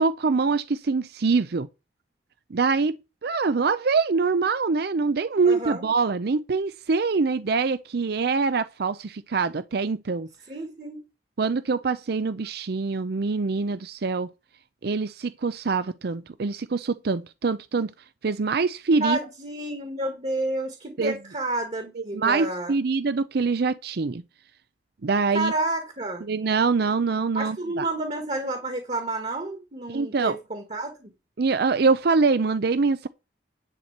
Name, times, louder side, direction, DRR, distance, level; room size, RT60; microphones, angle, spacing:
voice 1, 0.0-1.7 2.5-3.0 3.2-10.3 11.4-14.3 14.8-17.9 18.2-19.2 21.0-21.1 22.0-24.2 25.0-25.5 26.2-27.8 29.9-30.4 31.4-33.1, right 4 dB, 60° right, 0.5 m, -24 dB
voice 2, 5.5-5.9 10.5-11.0 19.0-22.8 25.3-26.2 27.4-31.1, right 2 dB, 35° right, 1.7 m, -30 dB
10.5 x 4.4 x 7.9 m
head